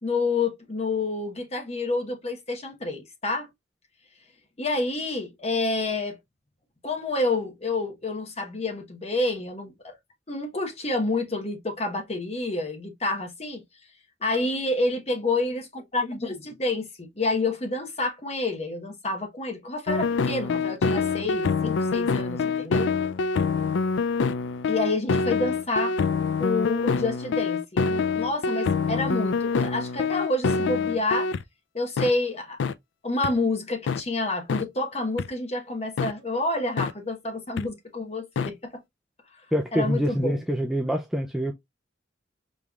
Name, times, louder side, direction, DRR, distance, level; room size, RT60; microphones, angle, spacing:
voice 1, 0.0-3.5 4.6-6.2 6.8-10.0 10.3-13.6 14.2-22.9 24.7-26.0 26.4-31.3 31.7-32.6 33.0-38.8 39.7-40.4, left 2 dB, 35° left, 1.1 m, -28 dB
sound 1, 19.9-31.4 32.0-32.1 32.6-32.7 33.2-33.3 33.9-34.0 34.5-34.6 35.2-35.3 36.0-36.1 36.8-36.9 37.6-37.7 38.4-38.5, left 5 dB, 80° left, 0.4 m, -25 dB
voice 2, 39.5-41.5, equal, ahead, 0.4 m, -25 dB
5.3 x 3.1 x 2.4 m
head